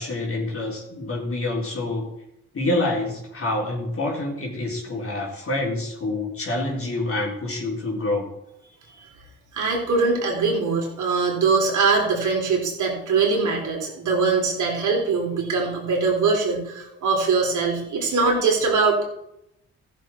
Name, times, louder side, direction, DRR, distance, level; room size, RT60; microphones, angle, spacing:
voice 1, 0.0-2.1 2.5-8.3, left 2 dB, 45° left, -3 dB, 3.9 m, -27 dB
voice 2, 9.5-19.1, right 4 dB, 65° right, -1 dB, 3.9 m, -22 dB
14.5 x 7.4 x 4.5 m, 0.83 s
hypercardioid pair, 45°, 32 cm